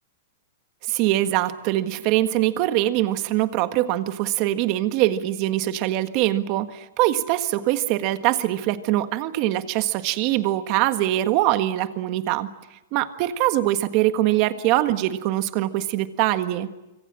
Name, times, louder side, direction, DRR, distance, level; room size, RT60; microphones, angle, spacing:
voice 1, 0.9-12.5 12.9-16.7, right 14 dB, 40° right, 10 dB, 1.5 m, -23 dB
26.0 x 24.5 x 7.6 m, 0.99 s
supercardioid pair, 160°, 0 cm